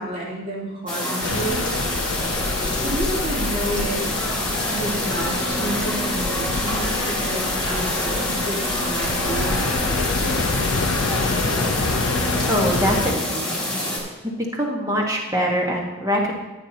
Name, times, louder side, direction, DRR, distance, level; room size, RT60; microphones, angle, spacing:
voice 1, 0.0-1.7 2.8-4.2 4.7-10.5, right 1 dB, 40° right, -5 dB, 3.1 m, -30 dB
sound 1, 0.9-14.0, left 1 dB, 5° left, 4.1 m, -26 dB
sound 2, 1.2-13.1, left 4 dB, 65° left, 0.5 m, -27 dB
voice 2, 12.5-13.6 14.2-16.3, equal, 15° right, -1 dB, 1.5 m, -23 dB
14.5 x 8.7 x 2.9 m, 1.1 s
head